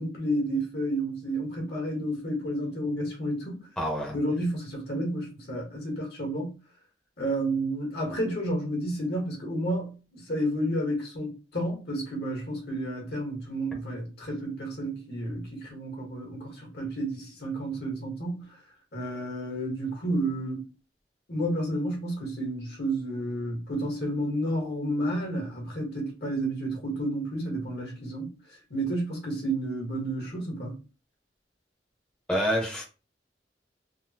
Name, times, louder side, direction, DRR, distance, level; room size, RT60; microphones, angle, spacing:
voice 1, 0.0-3.6 4.1-6.5 7.2-18.6 18.9-20.7 21.3-28.3 28.7-30.8, right 1 dB, 65° left, 1.4 m, -31 dB
voice 2, 3.8-4.2 32.3-32.8, equal, 5° left, 0.7 m, -27 dB
3.4 x 2.2 x 2.8 m
head